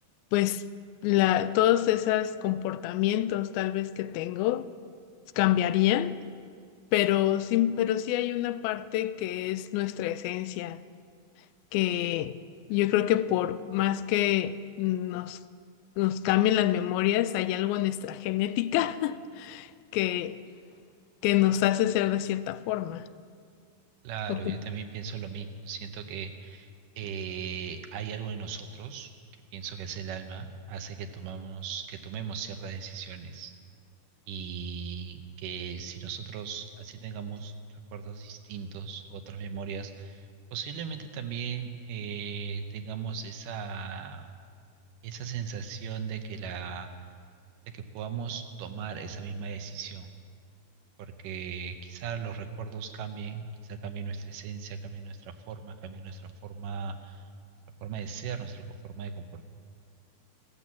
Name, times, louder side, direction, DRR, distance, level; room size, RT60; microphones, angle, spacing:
voice 1, 0.3-0.6 1.0-4.7 5.4-6.2 6.9-10.8 11.7-12.4 12.7-15.4 16.0-20.4 21.2-23.1 24.3-24.6, left 13 dB, 85° left, 2.4 m, -26 dB
voice 2, 24.0-26.7 27.0-29.1 29.5-33.5 34.3-44.3 45.0-46.9 47.7-50.1 51.0-57.2 57.8-59.4, right 6 dB, 75° right, 2.1 m, -38 dB
15.5 x 12.5 x 7.3 m
omnidirectional pair, 4.3 m